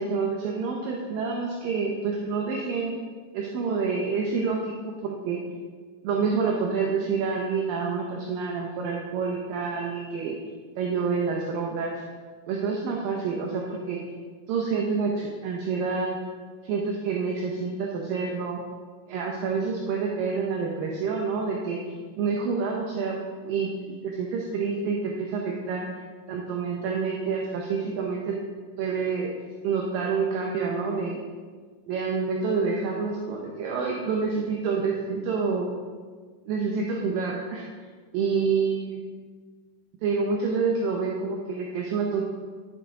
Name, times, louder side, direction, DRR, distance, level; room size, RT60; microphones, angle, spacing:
voice 1, 0.0-3.0 3.3-5.4 6.0-10.4 10.8-11.9 12.5-14.0 14.5-16.2 16.6-18.6 19.1-21.8 22.2-23.2 23.4-25.9 26.3-28.4 28.8-29.3 29.6-31.2 31.9-35.7 36.5-37.6 38.1-39.0 40.0-42.2, right 5 dB, 75° right, -1 dB, 2.4 m, -28 dB
12.5 x 7.1 x 3.7 m, 1.5 s
omnidirectional pair, 4.4 m